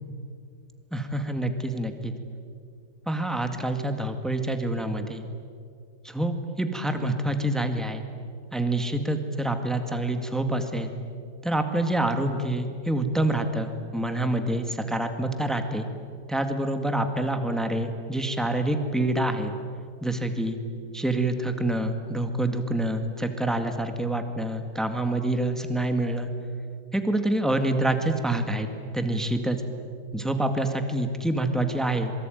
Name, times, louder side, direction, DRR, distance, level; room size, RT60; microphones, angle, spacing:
voice 1, 0.9-2.1 3.1-5.2 6.0-8.0 8.5-10.9 11.4-15.9 16.3-19.5 20.0-20.6 20.9-26.3 26.9-28.7 28.9-29.6 30.1-32.1, right 1 dB, ahead, 6 dB, 1.8 m, -27 dB
26.0 x 24.0 x 9.3 m, 2.3 s
omnidirectional pair, 2.0 m